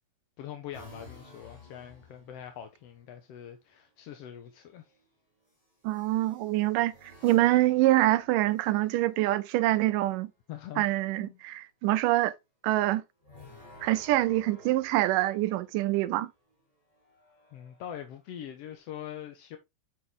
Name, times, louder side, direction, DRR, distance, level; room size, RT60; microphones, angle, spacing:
voice 1, 0.4-4.8 10.5-10.8 11.2-11.4 17.5-19.6, left 10 dB, 65° left, 1.6 m, -43 dB
sound 1, 0.7-3.0 4.3-4.7 5.8-9.3 13.2-16.2 16.9-18.8, left 2 dB, 10° left, 3.6 m, -54 dB
voice 2, 5.8-6.9 7.2-10.3 10.8-12.3 12.6-13.0 13.8-16.3, right 16 dB, 85° right, 2.3 m, -25 dB
6.9 x 6.3 x 3.7 m
omnidirectional pair, 3.8 m